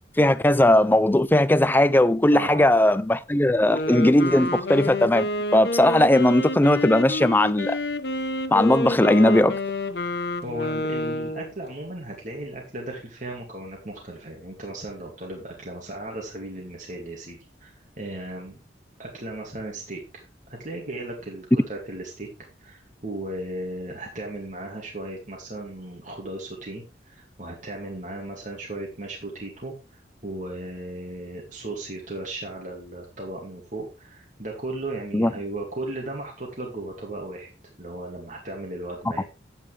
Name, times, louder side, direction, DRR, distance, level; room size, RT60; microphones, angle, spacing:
voice 1, 0.2-7.8 8.5-9.6 35.1-35.3, left 1 dB, 10° left, 0.4 m, -18 dB
voice 2, 2.3-2.7 10.2-18.6 19.0-22.3 22.6-29.7 30.2-37.5 37.8-39.2, right 1 dB, 45° right, 2.3 m, -36 dB
Wind instrument woodwind instrument, 3.5-11.5, left 1 dB, 60° left, 0.9 m, -28 dB
10.5 x 8.8 x 3.4 m
head